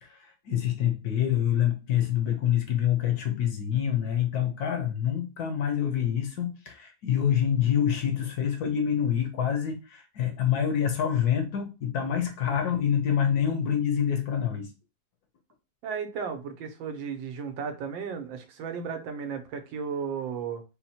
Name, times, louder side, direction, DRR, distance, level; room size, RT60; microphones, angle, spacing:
voice 1, 0.0-14.7, left 9 dB, 65° left, 1.1 m, -26 dB
voice 2, 15.8-20.6, right 6 dB, 90° right, 1.5 m, -34 dB
4.3 x 2.1 x 4.1 m
omnidirectional pair, 2.0 m